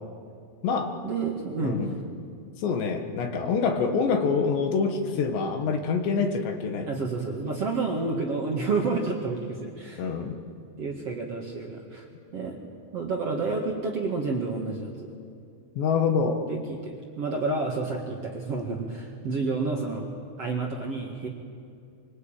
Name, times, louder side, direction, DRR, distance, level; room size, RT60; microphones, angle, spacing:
voice 1, 1.0-1.8 6.9-10.0 10.8-12.1 12.3-12.6 12.9-15.1 16.4-20.1 20.4-21.3, right 3 dB, 45° right, 0 dB, 2.2 m, -30 dB
voice 2, 1.6-2.0 2.6-6.9 10.0-10.4 15.8-16.5, left 5 dB, 75° left, 5 dB, 3.9 m, -26 dB
25.0 x 24.0 x 9.0 m, 2.5 s
omnidirectional pair, 5.2 m